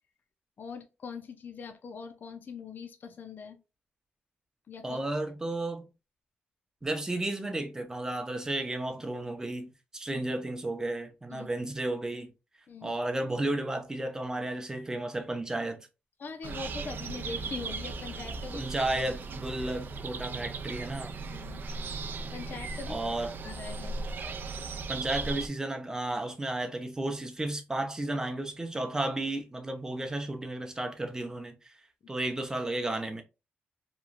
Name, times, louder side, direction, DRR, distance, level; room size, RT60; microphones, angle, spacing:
voice 1, 0.6-3.6 4.7-5.0 10.1-10.2 11.3-11.5 12.7-13.0 16.2-18.6 19.0-19.1 21.3-21.7 22.3-23.0 23.4-24.0, left 5 dB, 55° left, 0.5 m, -42 dB
voice 2, 4.8-5.9 6.8-12.3 12.8-15.9 18.5-21.1 22.9-23.4 24.9-31.8 32.1-33.2, right 2 dB, 15° right, 0.6 m, -33 dB
sound 1, 16.4-25.5, right 4 dB, 55° right, 0.3 m, -37 dB
3.0 x 2.3 x 2.4 m
cardioid pair, 110°, 4 cm